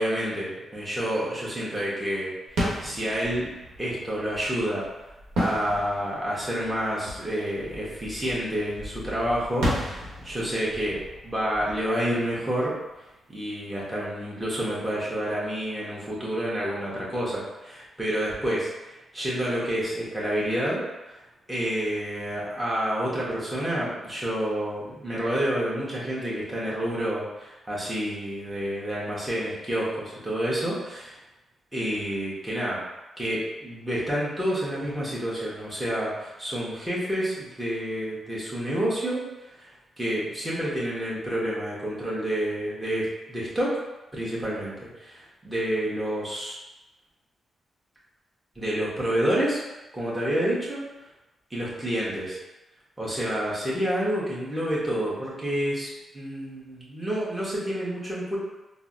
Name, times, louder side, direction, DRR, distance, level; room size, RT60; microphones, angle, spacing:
voice 1, 0.0-3.5 3.8-4.8 5.4-12.7 13.3-20.8 21.1-21.2 21.5-31.2 31.7-32.8 33.2-39.2 39.6-43.8 44.1-46.6 48.5-49.6 49.9-50.8 51.5-52.4 53.0-58.4, equal, 15° right, -7 dB, 1.2 m, -29 dB
sound 1, 2.5-13.1, equal, 80° right, 1.0 m, -34 dB
3.8 x 2.0 x 2.5 m, 1.0 s
supercardioid pair, 55°, 0 cm